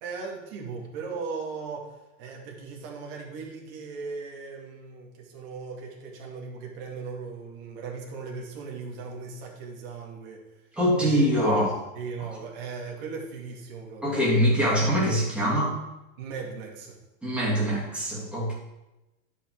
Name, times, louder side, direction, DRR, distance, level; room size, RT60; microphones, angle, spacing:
voice 1, 0.0-1.9 2.2-10.4 11.0-11.5 11.9-14.2 16.2-17.0, right 5 dB, 45° right, -1 dB, 2.3 m, -38 dB
voice 2, 10.8-11.7 14.0-15.7 17.2-18.5, equal, 5° right, -8 dB, 2.8 m, -23 dB
10.0 x 5.6 x 4.7 m, 1.0 s
supercardioid pair, 150°, 39 cm